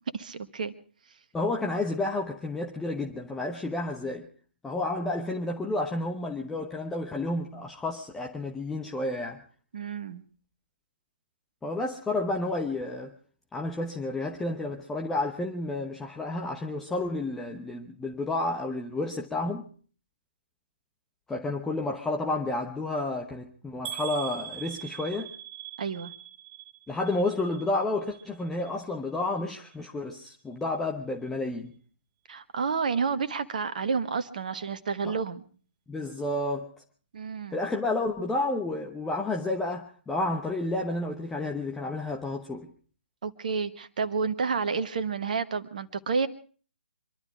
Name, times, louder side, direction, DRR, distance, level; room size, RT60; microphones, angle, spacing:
voice 1, 0.1-0.7 9.7-10.2 25.8-26.1 32.3-35.5 37.1-37.6 43.2-46.3, right 5 dB, 45° right, 1.4 m, -30 dB
voice 2, 1.3-4.3 4.6-9.4 11.6-13.1 13.5-19.7 21.3-25.3 26.9-31.7 35.0-35.2 35.9-36.7 37.5-42.7, left 2 dB, 5° left, 1.0 m, -31 dB
sound 1, 23.8-27.8 28.1-28.7 29.2-29.3 29.7-29.8, right 10 dB, 20° right, 1.4 m, -41 dB
25.5 x 12.0 x 4.7 m
figure-of-eight pair, 135°, 6 cm